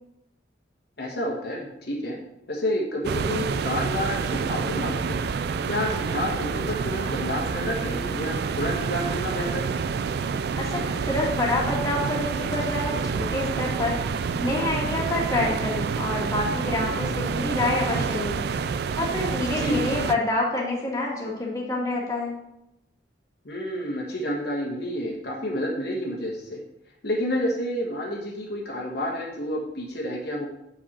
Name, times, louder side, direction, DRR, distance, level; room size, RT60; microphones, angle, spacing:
voice 1, 1.0-2.2 2.5-5.2 5.7-9.7 19.5-19.8 23.4-26.6 27.0-30.5, equal, 60° left, -1 dB, 1.3 m, -29 dB
sound 1, 3.0-20.1, right 5 dB, 60° right, 0.3 m, -28 dB
voice 2, 10.6-14.0 14.4-18.4 19.0-22.4, left 2 dB, 20° left, -4 dB, 1.6 m, -27 dB
7.3 x 5.1 x 4.2 m, 0.84 s
head